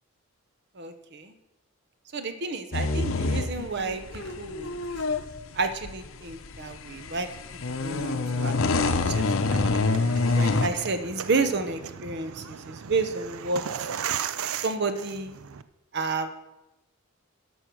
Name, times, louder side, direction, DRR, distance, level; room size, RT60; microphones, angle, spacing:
voice 1, 0.8-1.3 2.1-4.8 5.5-7.3 7.8-8.6 8.8-9.2 9.5-9.6 10.3-13.6 14.5-15.4 15.9-16.3, right 3 dB, 50° right, 9 dB, 0.9 m, -30 dB
sound 1, 2.7-10.7, left 3 dB, 65° left, 0.7 m, -26 dB
sound 2, 9.5-15.6, right 8 dB, 75° right, 0.5 m, -36 dB
12.0 x 6.3 x 6.2 m, 0.99 s
head